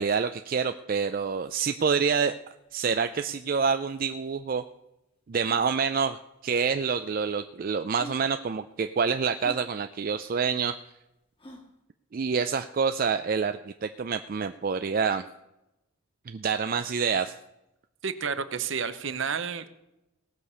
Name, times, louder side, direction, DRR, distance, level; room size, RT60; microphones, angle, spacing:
voice 1, 0.0-2.4 2.7-4.6 5.3-10.8 12.1-15.2 16.3-17.3, right 6 dB, 40° right, 9 dB, 0.4 m, -27 dB
sound 1, 1.2-1.3 1.5-1.6 2.1-2.2 2.7-3.1 4.4-4.5 5.4-5.7 6.7-6.8 7.5-7.6 7.9-8.2 9.4-9.6 11.4-11.7, left 1 dB, 25° left, 1.5 m, -45 dB
voice 2, 18.0-19.7, right 6 dB, 60° right, 12 dB, 0.8 m, -30 dB
18.0 x 6.7 x 5.5 m, 0.92 s
head